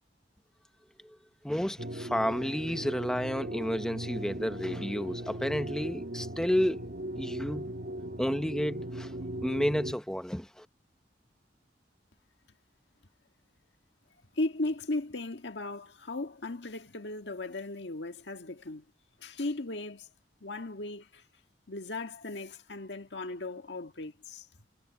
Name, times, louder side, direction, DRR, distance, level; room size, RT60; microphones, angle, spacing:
voice 1, 1.4-6.9 7.2-7.7 8.2-9.1 9.4-10.7, equal, 5° left, 0.9 m, -31 dB
sound 1, 1.8-9.9, right 1 dB, 65° right, 1.4 m, -38 dB
voice 2, 14.4-18.8 19.2-20.1 20.4-21.2 21.7-24.4, left 2 dB, 80° left, 1.7 m, -36 dB
head